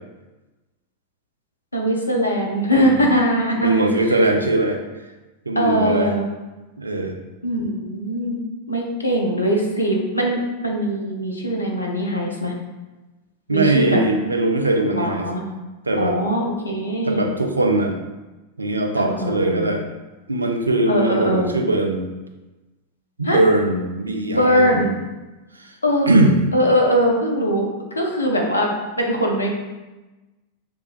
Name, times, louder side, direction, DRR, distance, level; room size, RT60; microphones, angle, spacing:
voice 1, 1.7-3.9 5.6-6.2 7.4-8.4 8.7-12.5 13.5-14.0 14.9-15.4 16.0-17.2 19.0-19.7 20.9-21.5 23.2-23.4 24.3-24.9 25.8-26.1 26.5-28.7 29.0-29.5, equal, 80° left, 0 dB, 0.7 m, -21 dB
voice 2, 3.6-4.8 5.5-6.1 6.8-7.2 13.5-15.3 15.9-16.2 17.0-17.9 18.6-19.8 20.3-22.1 23.2-24.9 25.6-25.8 26.1-26.4, right 2 dB, 80° right, 4 dB, 0.4 m, -20 dB
5.2 x 3.3 x 2.3 m, 1.1 s
figure-of-eight pair, 90°, 0 cm